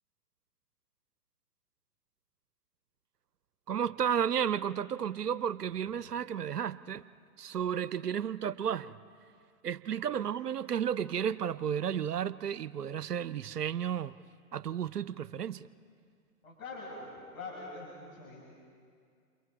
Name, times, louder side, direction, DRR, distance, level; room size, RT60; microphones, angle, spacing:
voice 1, 3.7-7.0 7.4-8.9 9.6-14.1 14.5-15.7, right 8 dB, 80° right, 18 dB, 0.6 m, -32 dB
voice 2, 16.4-18.5, left 3 dB, 60° left, -6 dB, 6.8 m, -44 dB
29.0 x 28.0 x 4.3 m, 2.2 s
figure-of-eight pair, 110°, 46 cm